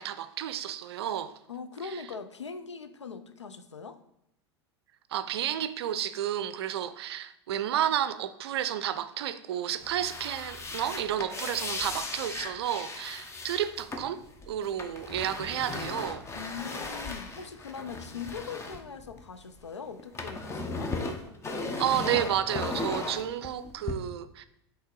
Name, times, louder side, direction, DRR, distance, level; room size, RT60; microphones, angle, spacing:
voice 1, 0.0-1.3 1.8-2.0 5.1-14.2 14.5-16.2 21.8-24.4, right 11 dB, 65° right, 0.5 m, -31 dB
voice 2, 1.5-4.0 16.3-20.9, left 5 dB, 85° left, 0.5 m, -41 dB
sound 1, 9.8-19.6 19.9-23.9, left 3 dB, 20° left, 0.8 m, -37 dB
7.8 x 3.4 x 3.7 m
figure-of-eight pair, 85°, 15 cm